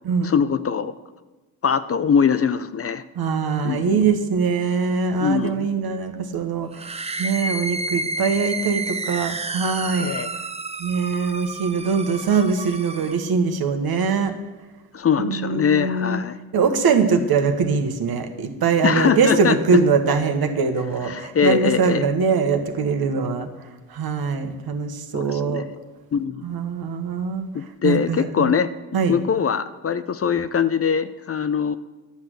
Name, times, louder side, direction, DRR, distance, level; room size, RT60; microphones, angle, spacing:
voice 1, 0.2-0.9 1.6-3.0 3.6-4.0 5.2-5.7 10.0-10.3 14.9-16.4 18.8-19.6 21.0-22.0 25.1-25.7 26.1-26.4 27.5-28.7 29.1-31.8, left 7 dB, 35° left, 13 dB, 0.5 m, -22 dB
voice 2, 3.1-6.9 7.2-10.1 10.8-14.3 15.2-16.2 16.5-23.5 23.9-25.6 26.4-27.5 27.8-28.5 28.9-29.2, right 5 dB, 60° right, 6 dB, 1.3 m, -22 dB
sound 1, 6.7-13.3, right 2 dB, 15° right, 0.6 m, -30 dB
9.6 x 6.3 x 7.8 m, 1.2 s
supercardioid pair, 65°, 41 cm